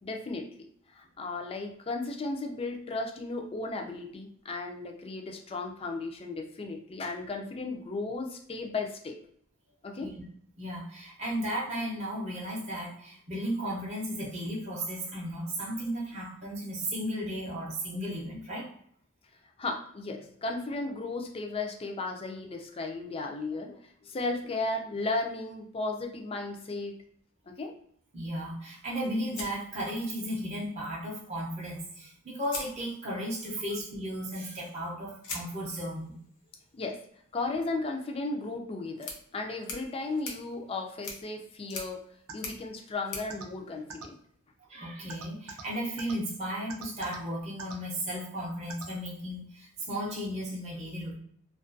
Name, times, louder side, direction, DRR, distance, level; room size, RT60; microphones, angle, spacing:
voice 1, 0.0-9.2 9.8-10.1 19.6-27.0 27.5-27.7 36.7-37.0 37.3-42.0 42.3-44.2, left 3 dB, 25° left, 3 dB, 0.3 m, -35 dB
voice 2, 10.6-18.7 28.1-36.2 44.7-51.1, equal, 30° right, -6 dB, 0.6 m, -35 dB
sound 1, 29.3-30.5 31.8-31.9 32.4-33.4 35.2-44.4, left 3 dB, 65° left, 0.6 m, -45 dB
sound 2, 42.3-42.4 43.3-43.4 43.9-44.0 45.1-45.6 46.0-46.1 46.7-47.2 47.6-47.8 48.7-48.8, right 5 dB, 80° right, 0.4 m, -40 dB
2.3 x 2.1 x 2.5 m, 0.65 s
head